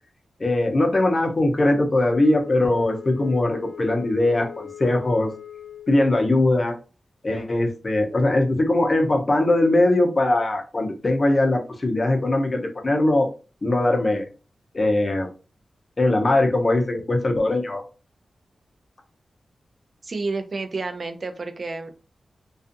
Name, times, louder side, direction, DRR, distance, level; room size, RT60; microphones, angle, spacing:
voice 1, 0.4-5.3 5.9-6.7 7.2-13.3 13.6-14.3 14.7-15.3 16.0-17.8, left 2 dB, 40° left, 3 dB, 0.6 m, -21 dB
Wind instrument woodwind instrument, 1.9-6.0, left 10 dB, 85° left, 0.4 m, -41 dB
voice 2, 20.0-21.9, right 3 dB, 50° right, 6 dB, 0.4 m, -30 dB
2.5 x 2.3 x 2.5 m, 0.34 s
wide cardioid pair, 80°, 0 cm